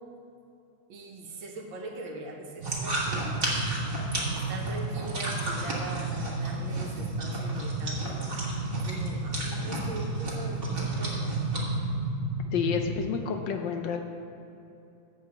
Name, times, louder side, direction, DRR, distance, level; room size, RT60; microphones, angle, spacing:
voice 1, 0.9-3.5 4.3-8.2 8.8-11.2, right 2 dB, 75° right, 1 dB, 1.7 m, -41 dB
sound 1, 2.6-11.6, right 1 dB, 30° right, 1.6 m, -35 dB
sound 2, 2.6-13.0, right 2 dB, 55° right, 0.6 m, -32 dB
voice 2, 12.5-14.0, left 7 dB, 70° left, 5 dB, 1.2 m, -29 dB
8.2 x 4.8 x 6.9 m, 2.7 s
omnidirectional pair, 2.2 m